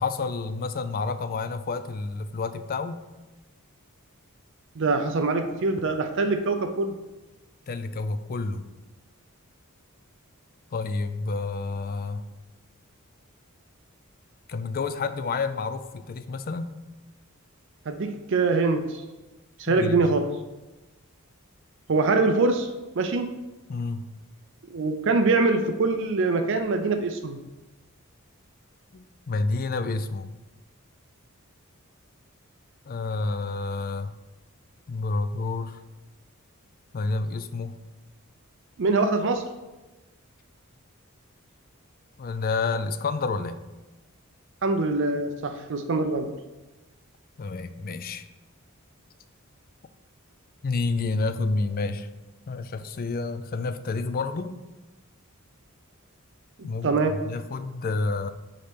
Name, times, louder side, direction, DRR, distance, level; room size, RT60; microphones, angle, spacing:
voice 1, 0.0-3.0 7.7-8.7 10.7-12.2 14.5-16.7 19.7-20.0 23.7-24.1 28.9-30.3 32.9-34.1 34.9-35.8 36.9-37.8 42.2-43.6 47.4-48.3 50.6-52.1 52.5-54.6 56.6-58.3, left 3 dB, 45° left, 11 dB, 0.4 m, -29 dB
voice 2, 4.8-6.9 17.9-19.0 19.6-20.3 21.9-22.7 23.0-23.3 24.7-27.4 38.8-39.4 44.6-46.3 56.8-57.1, right 3 dB, 60° right, 7 dB, 0.5 m, -24 dB
5.0 x 4.2 x 5.9 m, 1.1 s
head